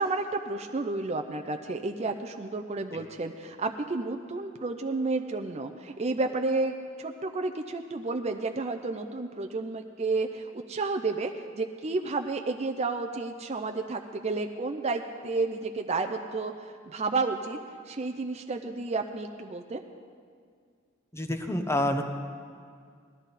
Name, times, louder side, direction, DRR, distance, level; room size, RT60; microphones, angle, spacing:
voice 1, 0.0-17.6 17.9-19.8, right 3 dB, 30° right, 5 dB, 0.5 m, -31 dB
voice 2, 21.1-22.0, left 1 dB, 15° left, 5 dB, 0.9 m, -28 dB
19.0 x 13.5 x 4.1 m, 2.1 s
head